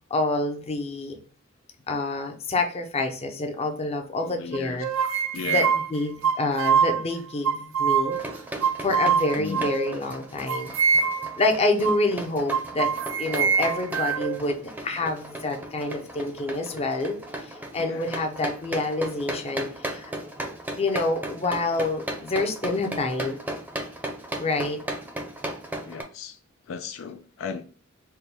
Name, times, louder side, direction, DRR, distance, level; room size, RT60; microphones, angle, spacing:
voice 1, 0.1-1.2 1.9-4.9 5.5-5.6 5.9-8.2 8.8-10.7 11.4-12.9 13.2-17.2 17.4-20.1 20.8-23.4 24.4-24.8, left 2 dB, 30° left, 0.6 m, -27 dB
voice 2, 4.2-4.8 5.3-5.8 9.4-9.7 17.7-18.2 25.8-26.4 26.7-27.6, left 5 dB, 75° left, 0.4 m, -35 dB
sound 1, 4.5-7.0 7.4-8.3 8.6-10.0 10.5-11.4 11.8-12.1 12.5-14.4, right 6 dB, 75° right, 0.4 m, -24 dB
sound 2, 8.1-26.0, right 1 dB, 10° right, 0.6 m, -36 dB
4.4 x 2.2 x 3.3 m
head